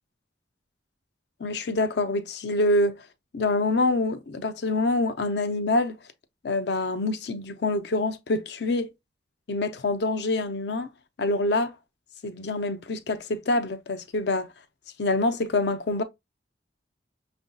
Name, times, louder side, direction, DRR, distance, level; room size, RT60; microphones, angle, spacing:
voice 1, 1.4-3.0 3.3-6.0 6.4-8.9 9.5-10.9 11.2-11.7 12.2-14.5 15.0-16.0, left 2 dB, 65° left, 0.5 m, -26 dB
6.1 x 2.6 x 2.2 m
head